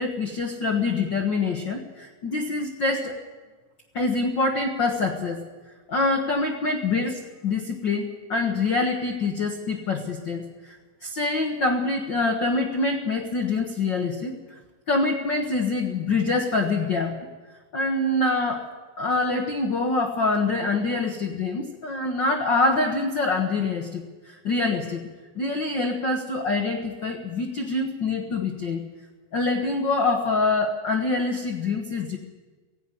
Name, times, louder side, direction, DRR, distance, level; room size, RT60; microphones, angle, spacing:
voice 1, 0.0-3.2 3.9-5.4 5.9-10.8 11.0-14.4 14.9-17.3 17.7-18.6 19.0-25.0 25.3-28.8 29.3-32.2, left 3 dB, 70° left, 3 dB, 1.0 m, -25 dB
16.5 x 16.0 x 9.8 m, 1.4 s
omnidirectional pair, 4.0 m